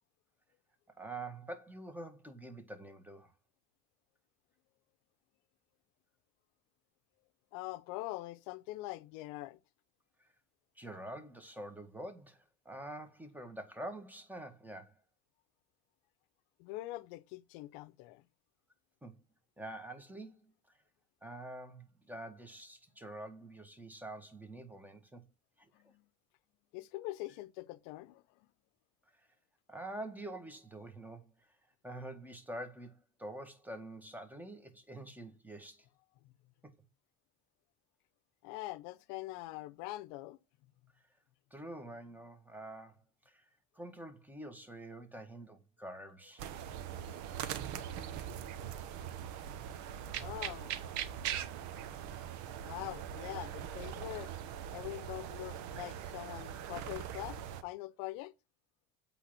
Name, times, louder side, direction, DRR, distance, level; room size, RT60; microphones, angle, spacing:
voice 1, 1.0-3.3 10.8-14.9 19.0-19.1 19.6-20.5 21.2-25.2 25.6-25.7 29.2-29.3 29.7-31.3 31.8-35.9 36.6-36.7 41.5-43.0 43.3-43.5 43.8-46.5, right 1 dB, 5° right, 1.7 m, -46 dB
voice 2, 7.5-9.6 16.6-18.2 25.7-26.0 26.7-28.5 36.2-36.3 38.4-40.4 50.2-50.7 52.6-54.3 54.7-58.3, left 18 dB, 75° left, 0.7 m, -43 dB
sound 1, 46.4-57.6, right 10 dB, 65° right, 1.0 m, -41 dB
8.3 x 3.6 x 5.7 m
supercardioid pair, 95°, 31 cm